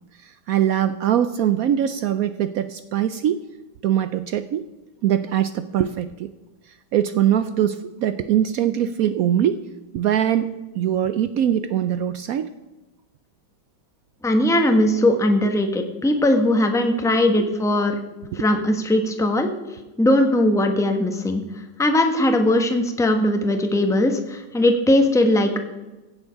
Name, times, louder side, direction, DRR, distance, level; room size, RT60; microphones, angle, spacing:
voice 1, 0.2-3.4 3.8-4.6 5.0-6.3 6.9-9.6 9.9-12.5 17.4-17.5 18.3-18.4, right 10 dB, 90° right, 12 dB, 0.7 m, -22 dB
voice 2, 14.2-18.0 18.3-19.5 20.0-21.4 21.8-25.6, left 1 dB, ahead, 5 dB, 0.9 m, -19 dB
16.0 x 8.1 x 5.8 m, 1.1 s
omnidirectional pair, 2.1 m